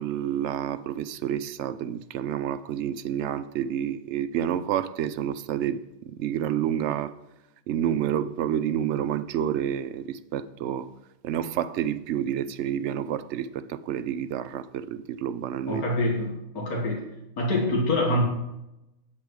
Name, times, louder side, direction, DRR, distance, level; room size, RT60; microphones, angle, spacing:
voice 1, 0.0-7.2 7.7-10.9 11.2-15.8, right 10 dB, 65° right, 0.7 m, -29 dB
voice 2, 15.7-17.1 17.4-18.2, left 1 dB, 85° left, 2.1 m, -25 dB
8.8 x 8.5 x 4.7 m
omnidirectional pair, 1.5 m